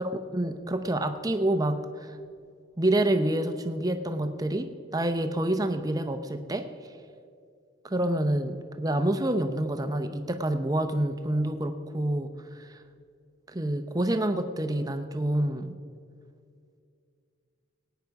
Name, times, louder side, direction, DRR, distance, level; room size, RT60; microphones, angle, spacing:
voice 1, 0.0-2.1 2.8-6.7 7.8-12.3 12.6-12.8 13.5-15.7, right 1 dB, 20° right, 8 dB, 0.7 m, -27 dB
19.5 x 9.2 x 4.8 m, 2.3 s
head